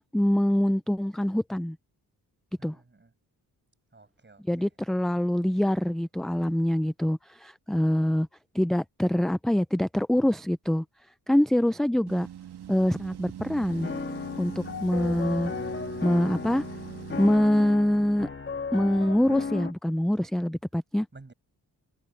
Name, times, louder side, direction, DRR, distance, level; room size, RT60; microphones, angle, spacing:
voice 1, 0.0-1.8 2.6-2.8 4.5-8.3 8.5-10.8 11.3-12.3 12.7-13.9 14.4-15.5 16.0-16.6 17.2-18.3 18.7-21.1, left 1 dB, ahead, 0.4 m, -25 dB
voice 2, 2.6-3.1 3.9-4.7 21.1-21.3, right 3 dB, 25° right, 7.1 m, -53 dB
sound 1, 12.1-17.4, right 10 dB, 70° right, 2.3 m, -42 dB
sound 2, 13.7-19.7, left 5 dB, 30° left, 1.5 m, -35 dB
cardioid pair, 70°, 41 cm